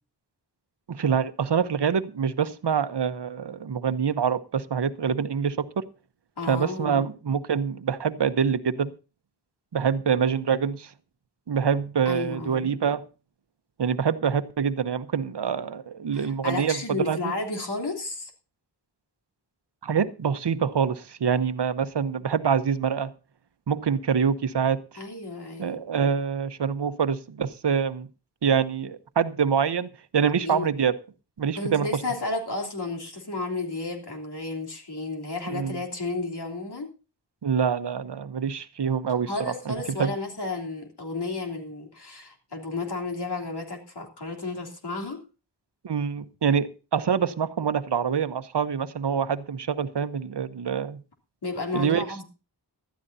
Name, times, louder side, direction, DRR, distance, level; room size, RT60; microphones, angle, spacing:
voice 1, 0.9-5.8 6.5-8.9 9.7-10.9 11.5-13.0 13.8-17.3 19.8-23.1 23.7-24.8 25.6-28.1 28.4-30.9 31.4-32.0 35.5-35.8 37.4-40.1 45.8-51.0 51.7-52.1, right 7 dB, 75° right, 0.9 m, -25 dB
voice 2, 6.4-7.0 12.0-12.7 16.1-18.3 25.0-25.8 30.4-30.7 31.5-36.9 39.3-45.2 51.4-52.2, left 3 dB, 70° left, 3.3 m, -32 dB
19.0 x 12.5 x 2.7 m
wide cardioid pair, 60°, 42 cm